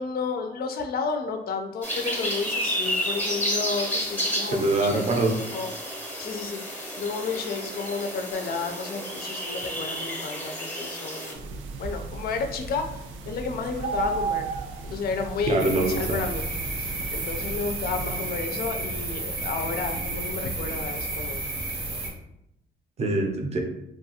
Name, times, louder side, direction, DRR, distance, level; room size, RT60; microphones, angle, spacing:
voice 1, 0.0-5.0 5.5-5.8 6.2-13.0 13.3-14.5 14.8-16.5 16.8-21.4, left 4 dB, 50° left, 5 dB, 0.4 m, -32 dB
sound 1, 1.8-11.3, equal, 10° left, 0.8 m, -31 dB
voice 2, 4.5-5.3 15.5-16.2 23.0-23.6, right 2 dB, 35° right, 2 dB, 0.6 m, -24 dB
sound 2, 11.3-18.4, right 4 dB, 80° right, 0.4 m, -35 dB
sound 3, 15.6-22.1, right 2 dB, 65° right, 0.8 m, -32 dB
2.6 x 2.3 x 2.8 m, 0.81 s
cardioid pair, 90°, 20 cm